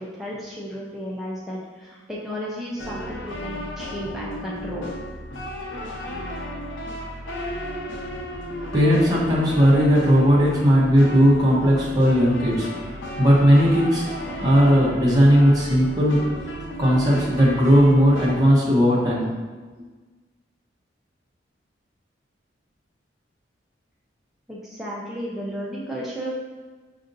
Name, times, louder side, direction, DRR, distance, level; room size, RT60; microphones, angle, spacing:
voice 1, 0.0-5.0 24.5-26.4, equal, ahead, -6 dB, 0.4 m, -33 dB
sound 1, 2.8-18.4, left 1 dB, 80° left, 0.6 m, -34 dB
voice 2, 8.7-12.7 13.2-16.3 16.8-19.3, equal, 20° right, -6 dB, 0.8 m, -17 dB
5.3 x 2.6 x 2.6 m, 1.3 s
head